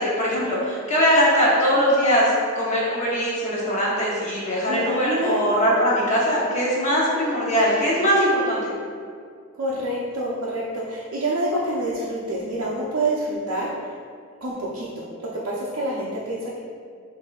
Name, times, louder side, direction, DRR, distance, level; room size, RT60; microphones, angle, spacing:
voice 1, 0.0-2.3 2.5-8.7, equal, 35° left, -7 dB, 1.0 m, -21 dB
voice 2, 4.7-5.4 9.6-13.7 14.4-15.0 15.4-16.6, right 1 dB, 85° right, -7 dB, 0.5 m, -27 dB
6.3 x 2.6 x 2.3 m, 2.2 s
head